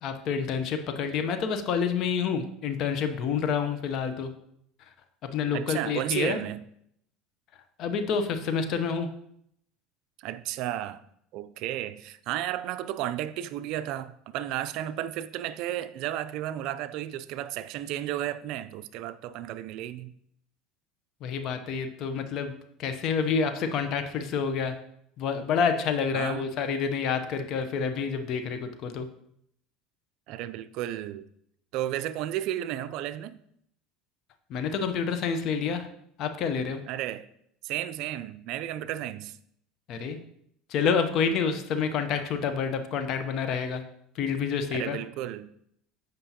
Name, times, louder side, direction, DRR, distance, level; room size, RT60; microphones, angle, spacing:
voice 1, 0.0-4.3 5.3-6.4 7.8-9.1 21.2-22.5 22.8-24.8 25.2-29.1 34.5-35.9 36.2-36.8 39.9-40.2 40.7-43.8 44.2-45.0, left 6 dB, 55° left, 0.7 m, -28 dB
voice 2, 5.5-6.6 10.2-11.0 11.3-20.1 26.1-26.5 30.3-31.2 31.7-33.4 36.9-37.3 37.6-39.4 44.7-45.5, right 12 dB, 65° right, 0.4 m, -33 dB
7.9 x 5.2 x 2.8 m
supercardioid pair, 105°, 0 cm